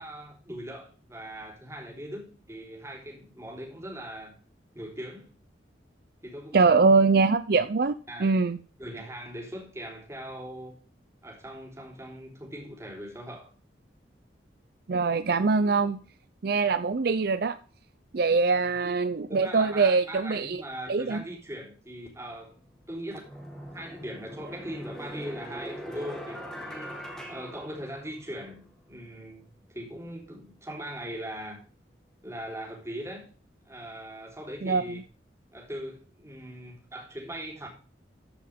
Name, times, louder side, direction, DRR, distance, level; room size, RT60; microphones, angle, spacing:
voice 1, 0.0-4.4 4.8-5.3 6.2-6.6 8.1-8.3 8.8-10.8 11.2-13.5 18.5-19.0 19.3-22.5 22.9-23.3 23.7-27.0 27.3-31.6 32.2-33.2 33.7-35.0 35.5-37.7, equal, 15° right, 3.5 m, -40 dB
voice 2, 6.5-7.9 8.2-8.6 14.9-16.0 16.4-17.6 18.1-20.6 20.9-21.2 34.6-34.8, right 4 dB, 60° right, 0.5 m, -23 dB
sound 1, 22.5-22.6 23.2-28.4, equal, 5° left, 2.3 m, -41 dB
14.0 x 5.8 x 3.5 m
head